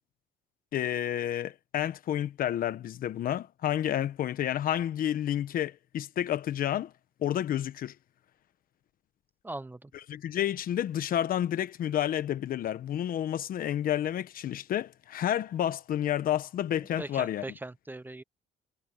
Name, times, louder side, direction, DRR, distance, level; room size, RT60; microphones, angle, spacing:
voice 1, 0.7-6.9 7.2-7.9 10.1-17.4, left 11 dB, 55° left, 1.2 m, -30 dB
voice 2, 9.4-9.9 17.0-18.2, right 2 dB, 10° right, 0.8 m, -40 dB
cardioid pair, 110°, 17 cm